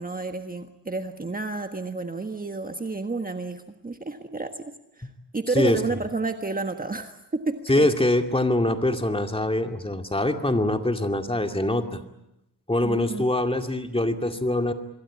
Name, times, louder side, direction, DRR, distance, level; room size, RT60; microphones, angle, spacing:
voice 1, 0.0-7.9 12.8-13.2, right 3 dB, 20° right, 6 dB, 1.5 m, -31 dB
voice 2, 7.7-12.0 12.7-14.7, left 1 dB, 10° left, 5 dB, 2.4 m, -24 dB
26.0 x 22.0 x 8.5 m, 0.85 s
cardioid pair, 100°, 44 cm